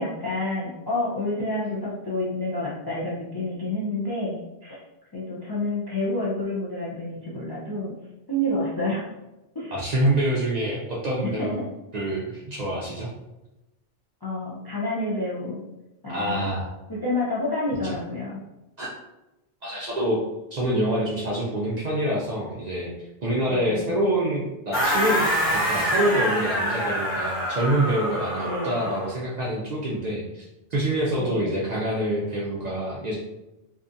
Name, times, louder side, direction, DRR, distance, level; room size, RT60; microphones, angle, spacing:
voice 1, 0.0-4.8 5.1-8.0 8.3-9.1 9.5-9.7 11.4-11.5 14.2-15.6 16.0-16.5 16.9-18.4 23.5-23.9 28.4-28.9 31.2-31.6, left 1 dB, 40° left, -7 dB, 0.3 m, -29 dB
voice 2, 9.7-11.6 11.9-13.1 16.1-16.7 18.8-18.9 19.6-20.2 20.5-22.9 23.2-30.4 30.7-33.2, right 1 dB, 55° right, -5 dB, 0.5 m, -26 dB
sound 1, 24.7-29.1, equal, 15° left, 0.7 m, -25 dB
2.7 x 2.3 x 2.6 m, 0.97 s
omnidirectional pair, 1.2 m